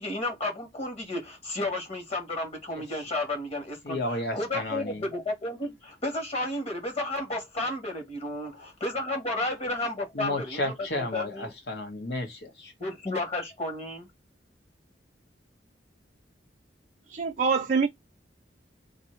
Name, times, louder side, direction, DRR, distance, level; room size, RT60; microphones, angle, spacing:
voice 1, 0.0-10.6 10.9-11.5 12.8-14.1, left 2 dB, 35° left, 1.3 m, -32 dB
voice 2, 3.8-5.1 8.5-8.7 10.1-12.7, left 1 dB, 70° left, 1.2 m, -33 dB
voice 3, 17.1-17.9, right 5 dB, 45° right, 0.4 m, -24 dB
2.7 x 2.7 x 4.3 m
head